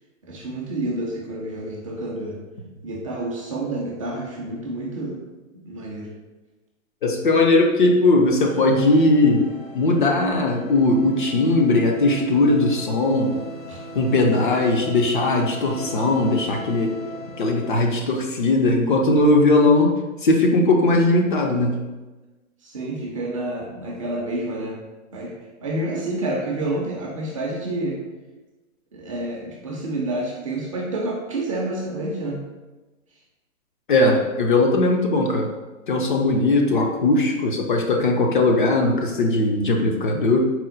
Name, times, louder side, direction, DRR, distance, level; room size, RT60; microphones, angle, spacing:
voice 1, 0.2-2.3 2.8-5.2 5.6-6.1 13.7-13.8 14.3-14.5 22.6-24.8 25.1-25.3 25.6-28.0 28.9-32.4, right 2 dB, 25° right, -2 dB, 0.4 m, -29 dB
voice 2, 7.0-9.5 9.7-13.4 13.9-16.9 17.4-19.9 20.2-21.8 33.9-35.5 35.9-40.4, left 2 dB, 40° left, 1 dB, 0.5 m, -19 dB
sound 1, 8.4-17.7, equal, 70° left, 1.2 m, -38 dB
4.3 x 2.1 x 3.7 m, 1.2 s
hypercardioid pair, 135°, 41 cm